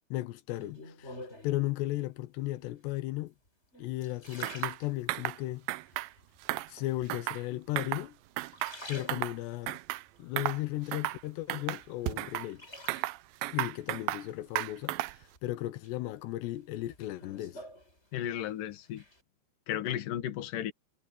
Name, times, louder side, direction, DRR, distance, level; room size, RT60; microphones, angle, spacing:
voice 1, 0.1-1.2 1.4-3.3 3.8-5.6 6.7-8.2 8.9-9.8 10.2-12.7 13.5-17.6, left 17 dB, 90° left, 3.1 m, -35 dB
sound 1, 0.6-1.7 2.4-2.9 3.5-5.4 5.9-6.5 7.3-8.0 8.3-9.7 10.2-11.4 11.8-13.4 14.8-15.4 15.8-18.4 18.7-19.2, left 1 dB, 15° left, 7.3 m, -49 dB
sound 2, 4.4-4.8 5.1-5.4 5.7-6.1 6.4-7.4 7.8-8.1 8.4-9.4 9.7-10.0 10.4-10.6 10.9-11.2 11.5-12.5 12.9-14.3 14.6-15.2, right 17 dB, 85° right, 2.0 m, -34 dB
voice 2, 18.1-19.0 19.7-20.7, left 11 dB, 60° left, 2.9 m, -34 dB
omnidirectional pair, 4.8 m